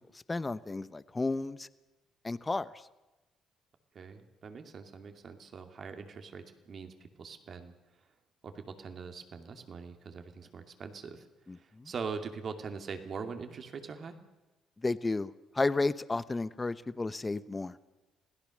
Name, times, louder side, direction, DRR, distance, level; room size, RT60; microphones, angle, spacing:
voice 1, 0.3-1.7 2.2-2.7 11.5-11.9 14.8-17.8, left 3 dB, 25° left, 15 dB, 1.0 m, -32 dB
voice 2, 3.9-7.7 8.4-11.2 11.5-14.2, right 5 dB, 55° right, 6 dB, 2.5 m, -42 dB
26.0 x 17.0 x 6.5 m, 1.1 s
supercardioid pair, 55°, 0 cm